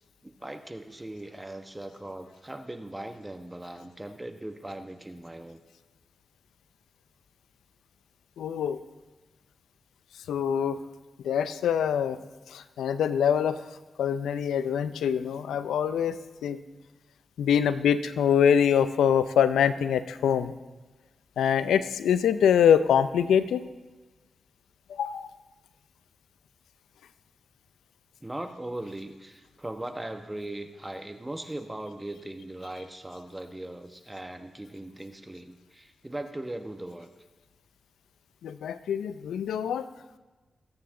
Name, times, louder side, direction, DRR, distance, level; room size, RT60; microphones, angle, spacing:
voice 1, 0.2-5.6 28.2-37.1, right 1 dB, 20° right, 7 dB, 1.2 m, -39 dB
voice 2, 8.4-8.8 10.3-10.8 11.2-12.2 12.5-13.6 14.0-16.2 16.4-16.6 17.4-20.5 21.4-23.6 24.9-25.3 38.4-39.9, left 8 dB, 90° left, 13 dB, 0.5 m, -24 dB
23.0 x 8.8 x 3.8 m, 1.2 s
supercardioid pair, 40°, 0 cm